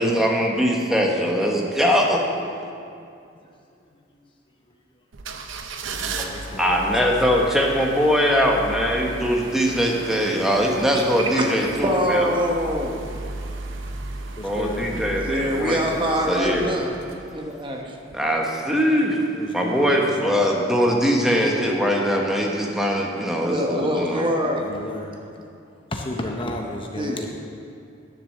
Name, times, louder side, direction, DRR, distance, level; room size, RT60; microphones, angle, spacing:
voice 1, 0.0-2.2 6.0-12.3 14.4-15.8 16.3-16.7 18.1-19.2 19.5-24.2, equal, ahead, -1 dB, 1.1 m, -21 dB
sound 1, 5.1-17.6 18.1-18.2, right 3 dB, 75° right, 0.7 m, -36 dB
voice 2, 6.0-7.2 14.4-15.2 19.3-20.4 24.6-25.2 25.9-27.3, left 1 dB, 25° left, 2 dB, 0.6 m, -33 dB
voice 3, 10.9-13.0 15.2-16.9 17.3-18.0 23.4-24.7 27.0-27.3, equal, 25° right, 1 dB, 0.9 m, -25 dB
10.5 x 6.7 x 6.6 m, 2.5 s
head